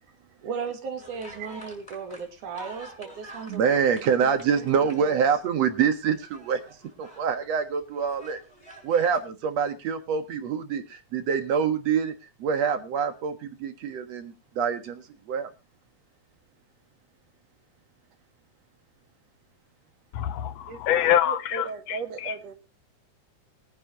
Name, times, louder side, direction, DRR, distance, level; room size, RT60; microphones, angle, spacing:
voice 1, 0.4-5.2, right 6 dB, 85° right, 3.6 m, -37 dB
sound 1, 1.0-5.5 5.9-7.3 7.8-9.2, right 1 dB, 10° left, 5.6 m, -48 dB
voice 2, 3.5-6.6 7.0-8.4 8.8-12.1 12.4-15.0 15.3-15.5 20.7-20.8 21.3-22.5, right 7 dB, 65° right, 2.5 m, -26 dB
voice 3, 20.1-22.5, left 11 dB, 70° left, 1.8 m, -26 dB
22.5 x 10.0 x 3.0 m
omnidirectional pair, 3.4 m